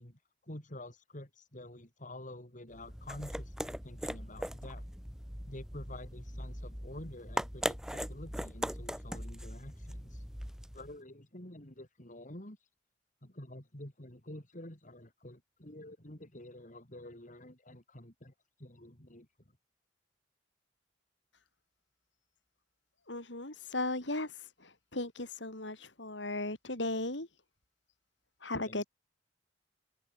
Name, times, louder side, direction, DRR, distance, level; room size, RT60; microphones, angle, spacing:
voice 1, 0.0-4.9 5.5-10.2 10.7-12.7 13.2-19.3 28.7-28.8, left 1 dB, 45° left, 5.0 m, -49 dB
sound 1, 2.7-10.9, equal, 5° right, 3.3 m, -40 dB
voice 2, 23.1-27.3 28.4-28.8, left 2 dB, 75° left, 5.5 m, -37 dB
head